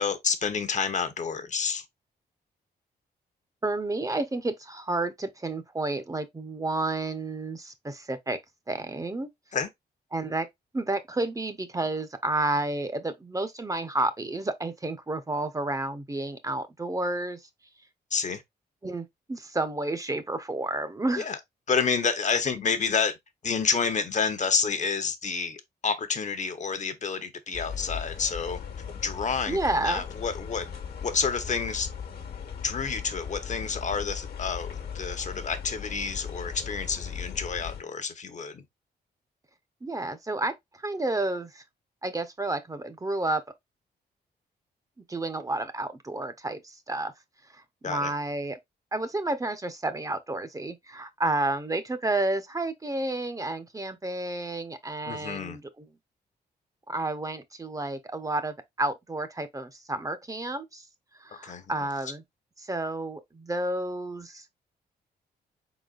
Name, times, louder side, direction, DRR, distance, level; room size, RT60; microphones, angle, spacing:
voice 1, 0.0-1.8 9.5-9.7 18.1-18.4 21.2-21.4 21.7-23.2 23.4-28.6 29.0-30.7 31.0-31.9 32.6-38.6 47.8-48.1 55.1-55.6 61.4-61.6, left 5 dB, 45° left, 0.8 m, -29 dB
voice 2, 3.6-8.4 8.7-9.3 10.1-10.5 10.7-17.5 18.8-21.3 29.5-30.0 39.8-41.6 42.0-43.4 45.1-47.1 47.5-48.6 48.9-55.9 56.9-60.9 61.2-62.2 62.6-64.4, right 2 dB, 20° right, 0.7 m, -31 dB
sound 1, 27.5-37.8, left 7 dB, 65° left, 1.2 m, -38 dB
4.2 x 4.0 x 2.4 m
cardioid pair, 85°, 17 cm